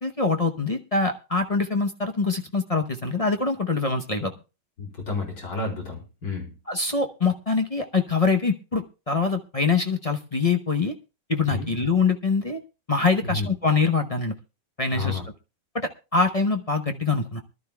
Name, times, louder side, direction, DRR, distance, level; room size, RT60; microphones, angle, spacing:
voice 1, 0.0-4.3 6.7-10.9 11.3-12.6 12.9-14.3 14.8-15.2 15.7-17.4, left 4 dB, 35° left, 4 dB, 0.5 m, -24 dB
voice 2, 4.8-6.5 11.5-11.7 13.2-13.5 14.9-15.2, left 4 dB, 75° left, 0 dB, 4.6 m, -30 dB
23.5 x 12.0 x 2.3 m, 0.30 s
omnidirectional pair, 1.9 m